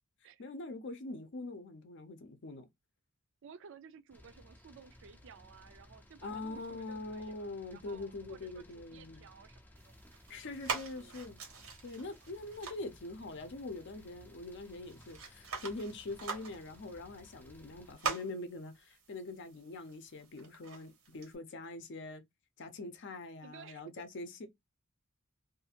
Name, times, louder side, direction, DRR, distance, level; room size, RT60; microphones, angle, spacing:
voice 1, 0.4-2.6 6.2-9.2 10.3-11.4 11.8-22.2 22.6-24.5, left 2 dB, 60° left, 0.6 m, -43 dB
voice 2, 3.4-9.9 10.3-11.3 23.4-24.0, right 6 dB, 60° right, 0.4 m, -55 dB
sound 1, 4.1-18.0, left 1 dB, 10° left, 0.4 m, -59 dB
sound 2, 9.7-21.3, right 5 dB, 90° right, 1.1 m, -45 dB
2.6 x 2.5 x 2.7 m
head